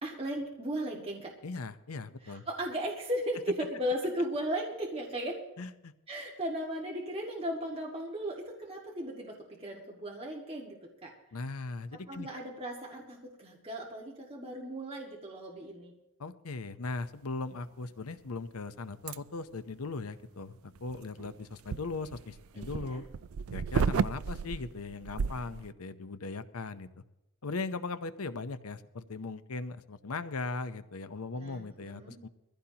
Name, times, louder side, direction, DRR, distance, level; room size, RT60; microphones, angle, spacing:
voice 1, 0.0-1.3 2.2-5.4 6.1-11.1 12.1-15.9 22.5-23.0 31.4-32.2, equal, 25° right, -2 dB, 1.9 m, -36 dB
voice 2, 1.4-2.4 5.6-5.9 11.3-12.3 16.2-23.0 23.5-26.9 27.4-32.3, left 3 dB, 85° left, 12 dB, 0.8 m, -39 dB
sound 1, 19.1-19.2 20.8-25.7, right 5 dB, 75° right, 0.4 m, -33 dB
22.5 x 15.5 x 2.9 m, 0.93 s
head